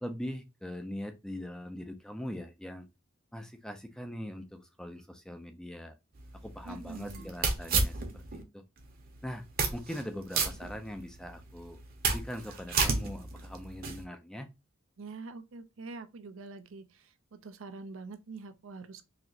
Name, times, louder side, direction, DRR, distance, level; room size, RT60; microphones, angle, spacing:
voice 1, 0.0-2.9 3.3-5.9 6.4-8.6 9.2-9.4 9.7-11.8 12.1-14.5, equal, 5° left, 0.5 m, -41 dB
sound 1, 6.2-8.4 8.8-8.9 9.4-10.0 10.3-11.3 11.7-14.0, right 4 dB, 45° right, 0.8 m, -31 dB
voice 2, 6.7-7.3 15.0-19.0, right 3 dB, 75° right, 0.5 m, -45 dB
4.1 x 2.9 x 2.7 m
head